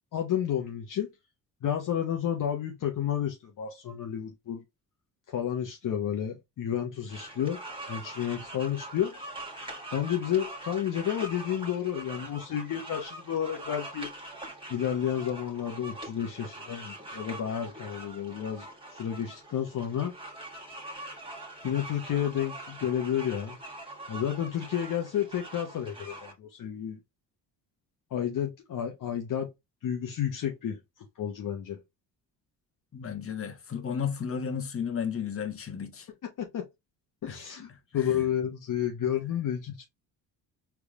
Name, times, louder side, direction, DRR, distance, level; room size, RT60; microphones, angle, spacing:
voice 1, 0.1-1.1 1.6-4.6 5.3-7.6 7.9-9.1 9.9-14.1 14.7-20.2 21.6-23.6 24.1-27.0 28.1-29.5 29.8-30.8 31.2-31.8 36.4-36.6 37.2-39.9, left 9 dB, 50° left, 1.0 m, -31 dB
sound 1, 7.1-26.3, right 1 dB, 10° right, 1.8 m, -43 dB
voice 2, 32.9-36.1 37.3-37.4 38.0-38.2, left 7 dB, 35° left, 1.3 m, -33 dB
4.5 x 3.5 x 2.5 m
supercardioid pair, 80°, 41 cm